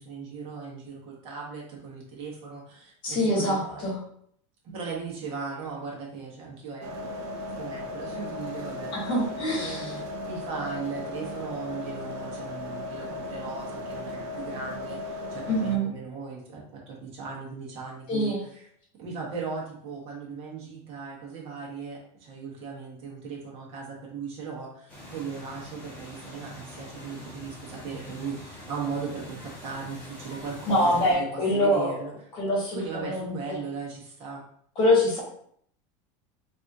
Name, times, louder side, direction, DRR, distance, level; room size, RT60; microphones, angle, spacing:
voice 1, 0.0-3.8 4.7-7.2 7.5-9.0 9.5-18.7 19.0-31.3 31.5-32.1 32.7-34.4, right 5 dB, 35° right, -3 dB, 1.2 m, -38 dB
voice 2, 3.0-4.0 8.9-10.0 15.5-15.9 18.1-18.4 30.7-31.9 32.3-33.6 34.8-35.2, left 1 dB, 30° left, -2 dB, 1.2 m, -25 dB
sound 1, 6.8-15.8, left 2 dB, 55° right, 0.5 m, -36 dB
sound 2, 24.9-31.1, left 1 dB, 10° left, 1.0 m, -44 dB
3.4 x 2.7 x 3.5 m, 0.65 s
supercardioid pair, 165°, 16 cm